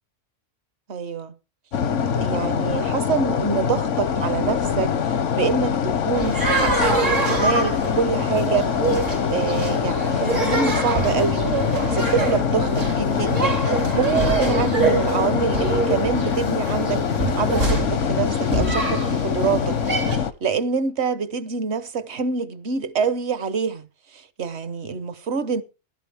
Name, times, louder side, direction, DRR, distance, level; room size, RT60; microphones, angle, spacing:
voice 1, 0.9-1.3 2.0-8.7 9.3-11.5 11.9-25.6, right 5 dB, 65° right, 1.2 m, -26 dB
sound 1, 1.7-20.3, left 7 dB, 80° left, 1.2 m, -24 dB
sound 2, 6.2-20.2, right 3 dB, 85° right, 3.6 m, -25 dB
14.5 x 12.5 x 3.4 m
omnidirectional pair, 1.3 m